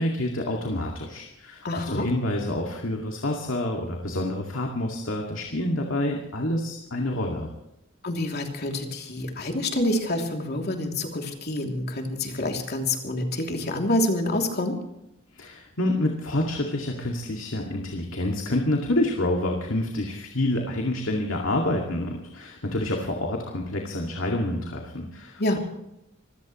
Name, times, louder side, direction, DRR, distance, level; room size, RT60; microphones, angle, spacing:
voice 1, 0.0-7.5 15.4-25.6, left 1 dB, 80° left, 1 dB, 2.3 m, -28 dB
voice 2, 1.6-2.1 8.0-14.8 25.4-25.6, left 1 dB, 55° left, 2 dB, 3.0 m, -27 dB
26.0 x 16.0 x 3.2 m, 0.86 s
head